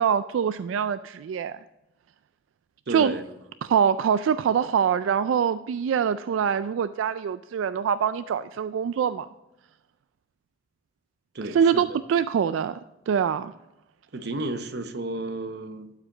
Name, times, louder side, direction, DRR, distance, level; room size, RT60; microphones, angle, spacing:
voice 1, 0.0-1.5 2.9-3.1 3.7-9.3 11.5-12.8 13.1-13.5, right 7 dB, 85° right, 0.3 m, -24 dB
voice 2, 2.9-3.3 11.3-12.0 14.1-15.9, right 2 dB, 55° right, 0.8 m, -32 dB
12.0 x 4.9 x 3.8 m
head